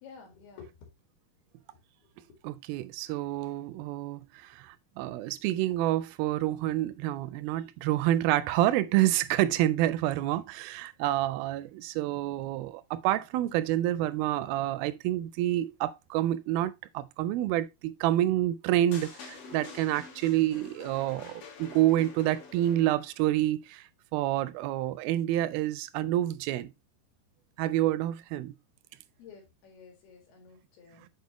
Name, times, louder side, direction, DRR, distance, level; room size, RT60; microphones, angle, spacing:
voice 1, 0.0-0.7 29.2-31.1, left 6 dB, 85° left, 4.0 m, -51 dB
voice 2, 2.4-23.8 24.1-26.7 27.6-28.5, right 14 dB, 80° right, 2.3 m, -28 dB
sound 1, 18.9-23.2, left 5 dB, 60° left, 3.2 m, -47 dB
8.2 x 4.8 x 3.0 m
omnidirectional pair, 4.4 m